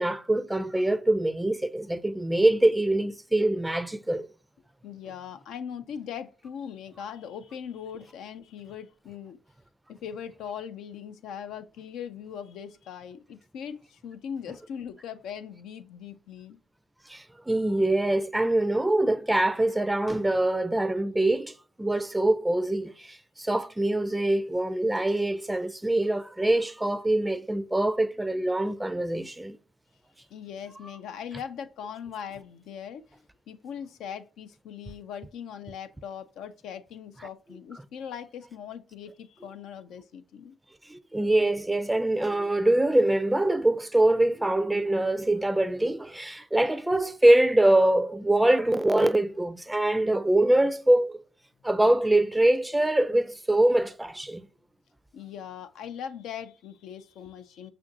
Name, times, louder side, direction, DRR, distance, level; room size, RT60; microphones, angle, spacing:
voice 1, 0.0-4.3 17.1-21.5 21.8-29.6 40.9-51.2 51.6-54.5, right 1 dB, 10° right, 0.4 m, -24 dB
voice 2, 4.8-9.4 9.9-16.6 30.3-40.5 55.1-57.7, left 8 dB, 70° left, 0.4 m, -40 dB
5.6 x 2.5 x 2.6 m
hypercardioid pair, 50°, 0 cm